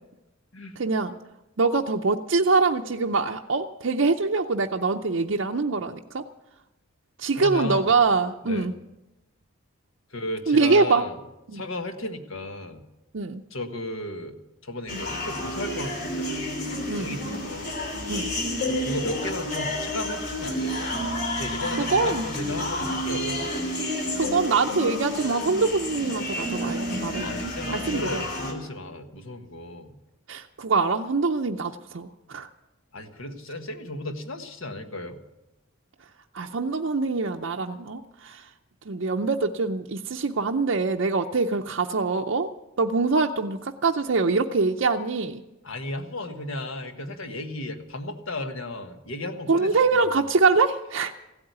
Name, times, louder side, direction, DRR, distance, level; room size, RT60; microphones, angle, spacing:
voice 1, 0.8-1.2 1.6-6.2 7.2-8.7 10.5-11.0 11.5-11.6 13.1-13.4 16.9-17.2 18.1-18.3 21.8-22.2 24.1-27.3 27.7-28.2 30.3-32.5 36.3-38.5 38.9-42.5 42.8-45.4 49.5-51.1, right 4 dB, 60° right, 1 dB, 0.6 m, -24 dB
voice 2, 7.4-7.9 8.4-8.7 10.1-11.1 11.5-12.8 13.5-17.8 18.7-21.0 21.4-23.5 27.2-30.0 32.9-35.2 45.6-50.3, left 1 dB, 70° left, 7 dB, 1.5 m, -35 dB
sound 1, 14.9-28.5, left 1 dB, 50° left, 3.1 m, -30 dB
16.0 x 8.7 x 9.4 m, 0.97 s
head